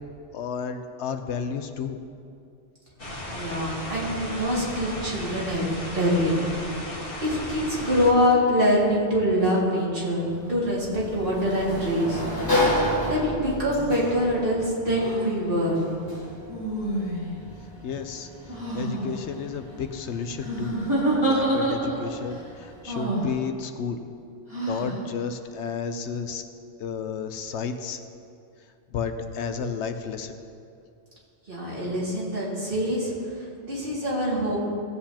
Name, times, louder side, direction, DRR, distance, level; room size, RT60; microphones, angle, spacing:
voice 1, 0.3-2.0 17.8-18.3 18.7-20.7 21.2-24.0 24.6-26.4 26.8-28.0 28.9-30.3, left 6 dB, 80° left, 8 dB, 1.0 m, -32 dB
sound 1, 3.0-8.1, left 1 dB, 50° left, 1.9 m, -35 dB
voice 2, 3.3-6.3 7.2-12.2 13.0-15.8 31.5-33.1 33.6-34.6, equal, 50° right, -6 dB, 2.5 m, -24 dB
Sliding door, 10.2-22.8, left 1 dB, 20° left, 1.6 m, -32 dB
sound 2, 14.9-15.2 16.5-17.4 18.5-19.0 20.4-22.1 22.9-23.3 24.5-25.0, right 1 dB, 25° right, 2.8 m, -27 dB
17.5 x 8.2 x 2.9 m, 2.5 s
omnidirectional pair, 1.2 m